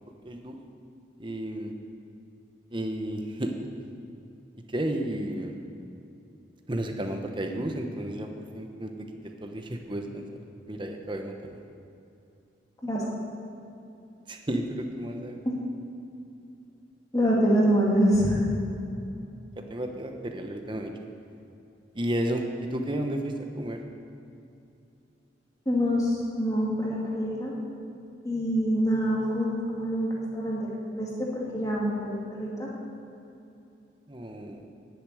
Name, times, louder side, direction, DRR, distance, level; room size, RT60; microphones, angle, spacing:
voice 1, 0.2-0.6 1.2-1.7 2.7-3.5 4.7-5.5 6.7-8.9 9.2-10.3 10.7-11.6 14.3-15.5 19.6-20.9 21.9-23.8 34.1-34.7, right 1 dB, 25° right, 4 dB, 1.0 m, -32 dB
voice 2, 17.1-18.4 25.7-27.6 28.2-32.7, equal, 20° left, -4 dB, 2.3 m, -26 dB
9.6 x 8.4 x 9.3 m, 2.7 s
head